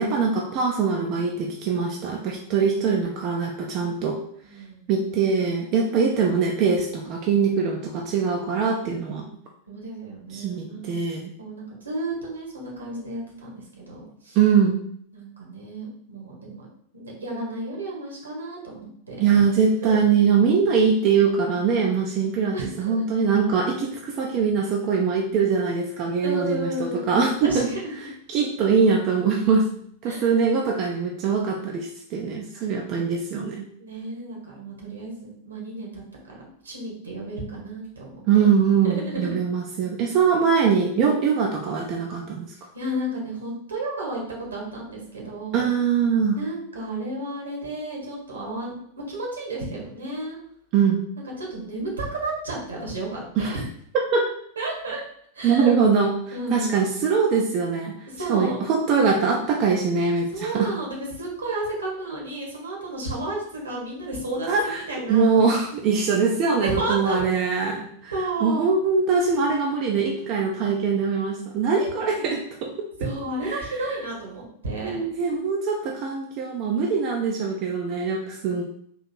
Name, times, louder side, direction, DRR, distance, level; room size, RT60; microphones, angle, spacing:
voice 1, 0.0-4.2 4.9-9.3 10.3-11.3 14.3-14.8 19.2-27.7 28.0-29.7 30.0-33.7 38.3-42.7 45.5-46.4 50.7-51.0 53.4-53.6 54.1-54.3 55.4-56.2 56.5-60.7 64.5-68.1 68.4-72.7 73.0-73.1 73.4-73.6 74.8-78.6, right 5 dB, 40° right, 0 dB, 0.6 m, -22 dB
voice 2, 4.4-4.9 9.7-10.9 11.4-14.4 15.1-16.7 16.9-19.4 19.8-19.9 22.5-23.0 26.2-28.1 30.1-30.3 33.8-36.0 36.3-38.2 38.8-39.3 42.7-45.7 46.3-50.4 51.4-53.6 54.5-55.0 55.3-55.8 56.3-56.9 58.1-58.6 60.3-65.4 66.6-67.2 68.1-68.8 71.9-72.4 73.0-75.0, right 2 dB, 75° right, -2 dB, 1.6 m, -32 dB
3.9 x 2.9 x 4.3 m, 0.67 s
figure-of-eight pair, 90°, 0 cm